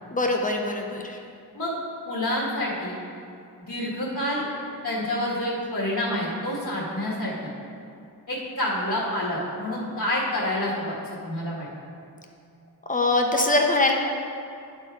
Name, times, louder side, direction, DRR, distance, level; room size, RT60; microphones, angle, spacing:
voice 1, 0.1-1.2 12.9-13.9, left 2 dB, 20° left, 2 dB, 1.0 m, -22 dB
voice 2, 2.1-3.0 3.6-4.4 4.8-7.5 8.3-11.7, left 1 dB, 45° left, -7 dB, 2.0 m, -28 dB
10.5 x 4.5 x 4.7 m, 2.5 s
wide cardioid pair, 40°, 41 cm